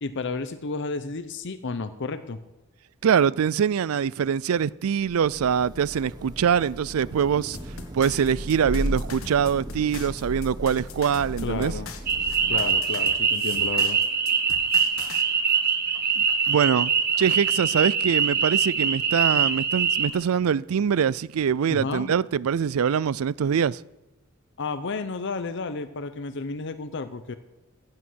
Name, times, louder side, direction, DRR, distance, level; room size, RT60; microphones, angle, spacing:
voice 1, 0.0-2.4 11.4-11.9 12.5-14.0 21.7-22.1 24.6-27.3, left 3 dB, 60° left, 0.8 m, -32 dB
voice 2, 3.0-7.6 7.9-11.7 16.5-16.9 17.2-23.8, right 7 dB, 85° right, 0.4 m, -23 dB
Thunder / Rain, 5.0-13.0, equal, 20° right, 1.6 m, -35 dB
sound 1, 7.5-15.2, left 5 dB, 80° left, 1.5 m, -42 dB
sound 2, 12.1-20.1, right 6 dB, 50° right, 1.4 m, -23 dB
15.0 x 8.8 x 6.3 m
head